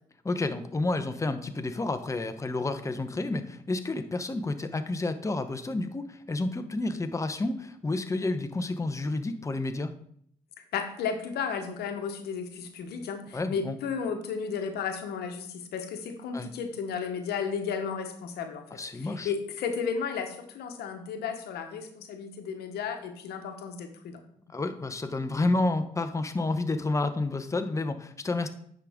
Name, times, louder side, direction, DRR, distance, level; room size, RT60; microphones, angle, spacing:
voice 1, 0.2-10.0 13.3-13.8 16.3-16.5 18.7-19.3 24.5-28.5, left 2 dB, 20° left, 8 dB, 0.8 m, -30 dB
voice 2, 10.7-24.2, left 6 dB, 80° left, 6 dB, 1.1 m, -34 dB
9.7 x 5.1 x 3.6 m, 0.67 s
supercardioid pair, 55°, 17 cm